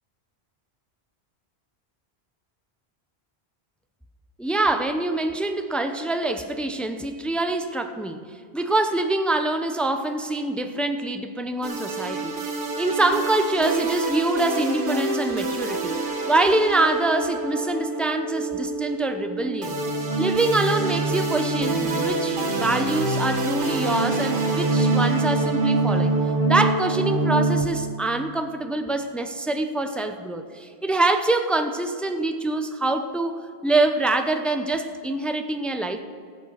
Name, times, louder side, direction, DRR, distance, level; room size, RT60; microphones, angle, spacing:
voice 1, 4.4-12.4 12.8-16.0 16.3-19.8 20.2-26.1 26.5-36.0, right 2 dB, ahead, 7 dB, 0.5 m, -25 dB
sound 1, 11.6-27.6, right 2 dB, 55° right, 1.4 m, -25 dB
14.5 x 8.6 x 6.5 m, 2.2 s
omnidirectional pair, 1.1 m